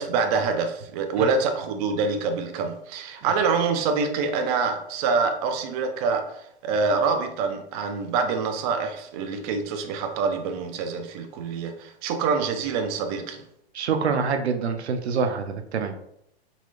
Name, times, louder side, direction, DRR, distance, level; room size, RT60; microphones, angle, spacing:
voice 1, 0.0-13.4, right 4 dB, 35° right, 5 dB, 0.5 m, -26 dB
voice 2, 13.7-16.0, right 5 dB, 85° right, 6 dB, 0.6 m, -26 dB
4.0 x 2.9 x 2.4 m, 0.74 s
hypercardioid pair, 120°, 32 cm